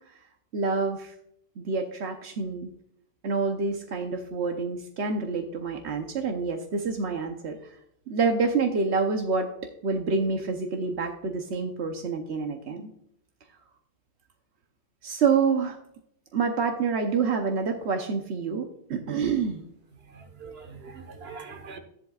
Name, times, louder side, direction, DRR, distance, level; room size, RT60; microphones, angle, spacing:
voice 1, 0.5-1.1 1.6-2.7 3.2-7.6 8.1-9.5 9.8-12.8 15.0-15.8 16.3-19.6, right 5 dB, 85° right, 1.2 m, -27 dB
voice 2, 20.1-21.8, right 5 dB, 70° right, 1.5 m, -43 dB
13.5 x 11.0 x 2.4 m
omnidirectional pair, 1.1 m